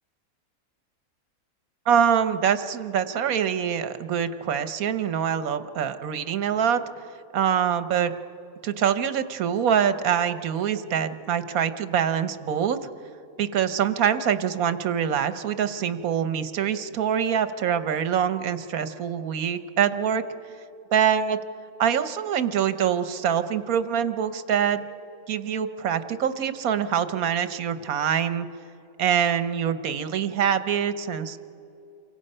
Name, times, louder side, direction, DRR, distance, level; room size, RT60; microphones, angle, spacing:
voice 1, 1.9-6.8 7.3-8.1 8.6-12.8 13.4-20.2 20.9-21.4 21.8-24.8 25.3-28.5 29.0-31.4, right 8 dB, 80° right, 11 dB, 1.4 m, -24 dB
29.0 x 24.0 x 5.5 m, 2.7 s
omnidirectional pair, 1.5 m